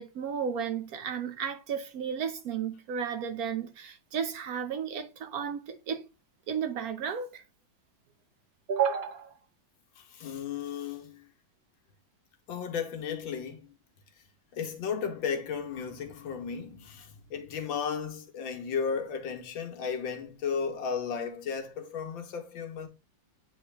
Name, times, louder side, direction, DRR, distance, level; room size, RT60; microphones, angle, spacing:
voice 1, 0.0-6.0 6.5-7.4 8.7-9.3, right 7 dB, 65° right, 1.0 m, -33 dB
voice 2, 10.0-11.3 12.5-13.7 14.5-22.9, left 6 dB, 85° left, 1.8 m, -34 dB
8.6 x 3.2 x 3.4 m
omnidirectional pair, 2.1 m